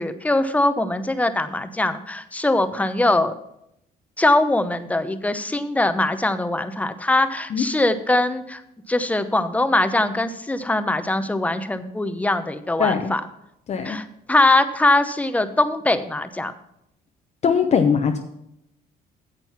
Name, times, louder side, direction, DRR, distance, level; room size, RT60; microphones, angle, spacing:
voice 1, 0.0-3.3 4.2-8.6 8.9-13.2 13.8-16.5, left 2 dB, 10° left, 11 dB, 0.8 m, -22 dB
voice 2, 12.8-13.1 13.7-14.0 17.4-18.2, left 6 dB, 40° left, 5 dB, 0.8 m, -20 dB
9.2 x 7.6 x 5.8 m, 0.79 s
cardioid pair, 110°, 17 cm